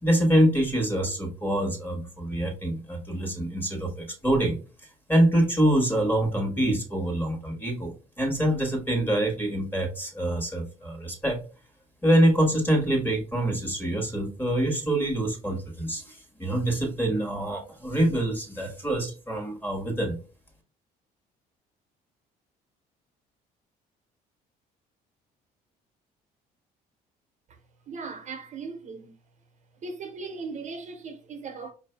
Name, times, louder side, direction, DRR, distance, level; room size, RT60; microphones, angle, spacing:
voice 1, 0.0-4.6 5.1-11.4 12.0-20.1, right 1 dB, 10° left, 1.5 m, -25 dB
voice 2, 27.9-29.1 29.8-31.7, right 4 dB, 45° right, 0.9 m, -38 dB
4.8 x 2.6 x 3.4 m
cardioid pair, 110°, 17 cm